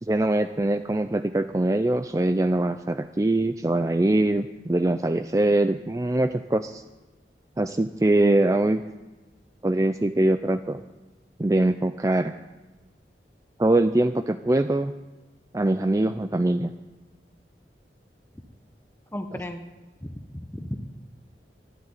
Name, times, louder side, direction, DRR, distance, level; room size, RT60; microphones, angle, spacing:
voice 1, 0.0-6.8 7.6-8.8 9.6-10.8 11.4-12.3 13.6-14.9 15.5-16.7 19.3-19.4, right 1 dB, 20° right, 9 dB, 0.4 m, -23 dB
voice 2, 19.1-19.6 20.0-20.8, left 1 dB, 10° left, 6 dB, 0.9 m, -35 dB
12.0 x 11.5 x 9.8 m, 1.2 s
head